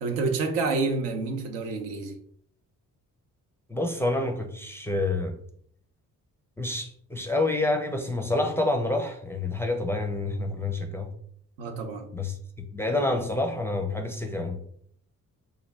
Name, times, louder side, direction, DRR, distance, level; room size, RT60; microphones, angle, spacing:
voice 1, 0.0-2.2 11.6-12.1, right 3 dB, 70° right, 0.7 m, -28 dB
voice 2, 3.7-5.4 6.6-11.1 12.1-12.4 12.7-14.6, left 2 dB, 5° left, 0.5 m, -28 dB
3.1 x 2.4 x 3.3 m
figure-of-eight pair, 40°, 43 cm